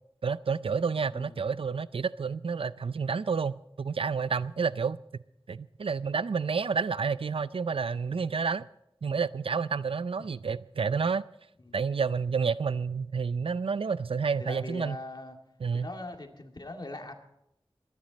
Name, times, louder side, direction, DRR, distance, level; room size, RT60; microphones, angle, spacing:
voice 1, 0.2-5.0 5.5-8.7 9.0-11.2 11.7-15.0 15.6-15.9, right 5 dB, 80° right, 0.4 m, -29 dB
voice 2, 1.1-1.4 10.2-10.3 11.6-11.8 14.4-15.4 15.7-17.1, left 2 dB, 50° left, 2.2 m, -41 dB
24.0 x 10.5 x 4.1 m
wide cardioid pair, 55°, 9 cm